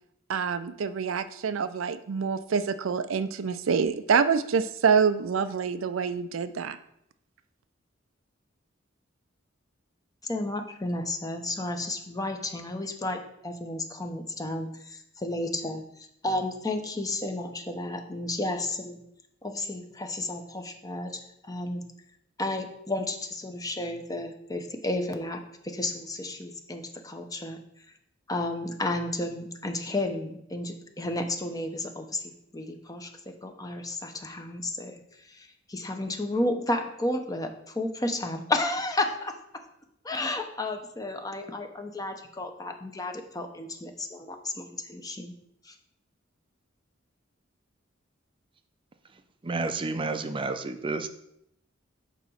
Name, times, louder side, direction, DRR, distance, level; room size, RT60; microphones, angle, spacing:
voice 1, 0.3-6.8, right 6 dB, 85° right, 11 dB, 0.4 m, -26 dB
voice 2, 10.2-15.8 16.2-19.0 19.4-21.8 22.4-27.6 28.3-35.0 35.3-39.3 40.0-45.3 45.7-45.8, left 2 dB, 20° left, 5 dB, 0.7 m, -32 dB
voice 3, 49.4-51.1, right 3 dB, 25° right, 8 dB, 0.5 m, -30 dB
8.1 x 3.0 x 6.2 m, 0.76 s
head